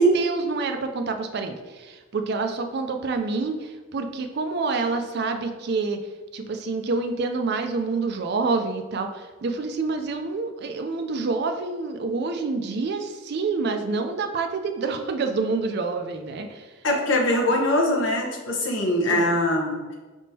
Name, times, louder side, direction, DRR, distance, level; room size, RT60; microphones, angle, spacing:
voice 1, 0.0-6.0 6.3-16.7 19.1-19.3, right 3 dB, 55° right, 6 dB, 0.4 m, -27 dB
voice 2, 16.8-19.9, equal, 65° left, 0 dB, 0.9 m, -22 dB
5.1 x 3.6 x 2.7 m, 1.3 s
head